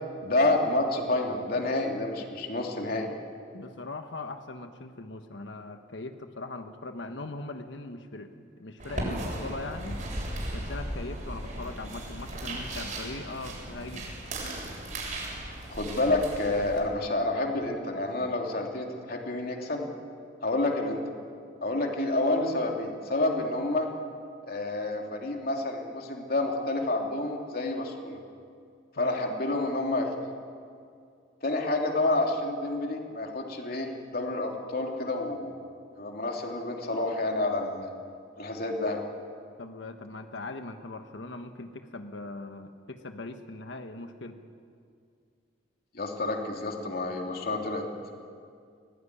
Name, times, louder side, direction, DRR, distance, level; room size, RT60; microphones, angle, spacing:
voice 1, 0.2-3.1 15.7-19.9 20.4-21.0 21.6-23.9 24.4-28.2 29.0-30.3 31.4-35.5 36.0-37.9 38.4-39.0 45.9-47.9, left 2 dB, 55° left, 1 dB, 3.2 m, -29 dB
voice 2, 3.5-10.0 10.5-14.1 29.0-29.3 39.6-44.4, left 2 dB, 75° left, 7 dB, 1.3 m, -40 dB
sound 1, 8.8-16.8, right 1 dB, 45° right, 7.7 m, -36 dB
24.0 x 18.0 x 10.0 m, 2.3 s
head